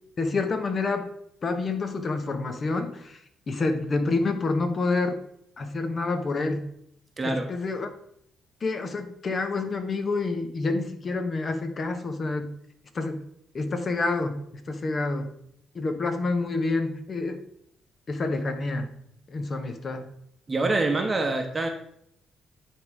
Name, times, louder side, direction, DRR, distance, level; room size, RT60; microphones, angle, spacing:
voice 1, 0.2-1.1 1.4-5.2 5.6-6.6 7.2-7.9 8.6-12.5 12.9-13.2 13.5-15.3 15.7-17.4 18.1-18.9 19.3-20.1, left 3 dB, 40° left, 7 dB, 1.1 m, -28 dB
voice 2, 7.2-7.5 20.5-21.7, right 2 dB, 25° right, 4 dB, 1.0 m, -25 dB
9.7 x 3.6 x 4.7 m, 0.71 s
cardioid pair, 90°, 0 cm